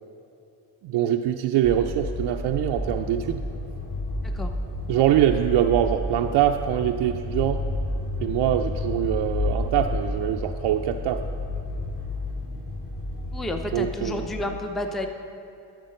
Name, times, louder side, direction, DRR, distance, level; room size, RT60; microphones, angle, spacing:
voice 1, 0.8-3.4 4.9-7.7 8.2-11.3 13.7-14.3, right 11 dB, 75° right, 4 dB, 0.5 m, -23 dB
sound 1, 1.6-14.4, left 2 dB, 40° left, 2.6 m, -31 dB
voice 2, 13.3-15.1, left 1 dB, ahead, 5 dB, 0.5 m, -31 dB
8.8 x 6.3 x 6.5 m, 2.7 s
cardioid pair, 90°, 43 cm